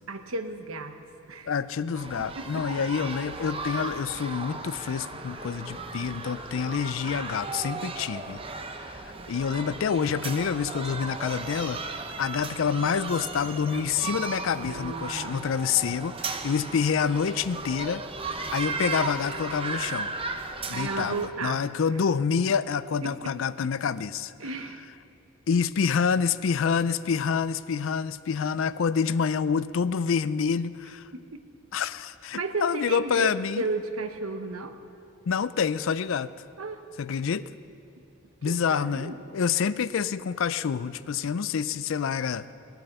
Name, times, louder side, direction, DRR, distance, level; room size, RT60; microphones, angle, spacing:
voice 1, 0.1-1.5 2.2-2.7 14.5-15.5 20.7-21.7 23.0-23.4 24.4-24.9 31.1-31.2 32.3-33.3 33.6-34.7 36.6-36.8 38.4-39.2, right 3 dB, 80° right, 7 dB, 1.0 m, -34 dB
voice 2, 1.5-8.4 8.9-9.0 9.3-11.8 12.2-18.0 18.3-20.1 20.7-24.3 25.5-31.1 31.7-33.6 35.3-36.3 37.0-37.5 38.4-42.5, left 6 dB, 65° left, 16 dB, 0.4 m, -27 dB
sound 1, 2.0-21.3, right 3 dB, 25° right, 0.7 m, -36 dB
18.5 x 9.0 x 6.7 m, 2.7 s
head